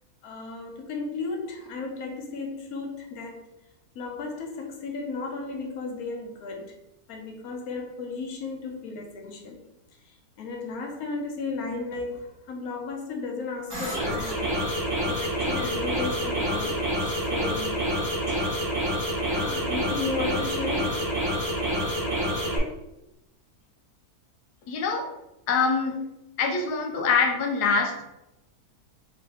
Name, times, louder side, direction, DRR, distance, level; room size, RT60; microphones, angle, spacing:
voice 1, 0.2-3.4 3.9-6.7 7.1-9.6 10.0-18.4 19.3-21.4, left 4 dB, 70° left, 2 dB, 1.2 m, -35 dB
sound 1, 13.7-22.6, equal, 85° right, 2.0 m, -27 dB
voice 2, 24.7-25.1 25.5-26.0 26.4-28.0, left 5 dB, 90° left, 4 dB, 1.3 m, -24 dB
4.5 x 2.9 x 3.4 m, 0.93 s
omnidirectional pair, 1.7 m